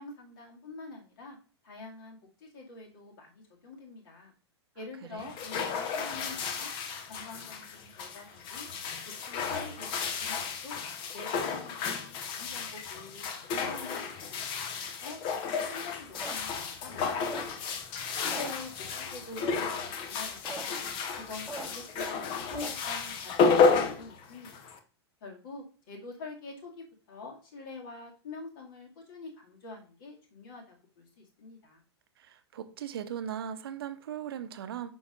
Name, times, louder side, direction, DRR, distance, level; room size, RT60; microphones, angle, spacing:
voice 1, 0.0-1.4 1.6-4.3 4.8-6.7 7.1-8.7 9.2-10.8 11.1-17.6 18.2-18.7 19.0-20.8 21.1-24.7 25.2-31.8, left 3 dB, 50° left, 2.3 m, -46 dB
sound 1, 5.2-24.8, left 5 dB, 35° left, 1.0 m, -32 dB
sound 2, 16.0-17.8 18.1-19.0 19.4-19.8 20.2-20.6 20.9-21.0 21.1-21.7 22.0-24.0, right 1 dB, ahead, 1.4 m, -41 dB
voice 2, 32.2-34.9, right 9 dB, 60° right, 0.8 m, -38 dB
8.4 x 5.9 x 2.5 m
figure-of-eight pair, 95°, 14 cm